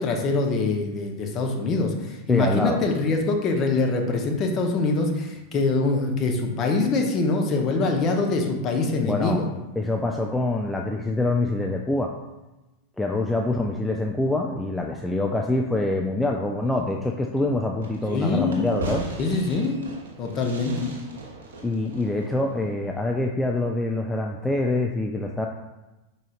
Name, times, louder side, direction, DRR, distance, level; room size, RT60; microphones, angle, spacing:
voice 1, 0.0-9.5 18.1-18.7 19.2-19.8 20.2-21.0, left 3 dB, 30° left, 2 dB, 0.7 m, -24 dB
voice 2, 2.3-2.8 9.0-9.4 9.8-12.1 13.0-19.1 21.6-25.5, left 2 dB, 5° left, 0 dB, 0.3 m, -25 dB
Fireworks, 17.8-23.0, right 2 dB, 65° right, 0.8 m, -38 dB
4.9 x 4.0 x 2.4 m, 1.0 s
figure-of-eight pair, 90°, 0 cm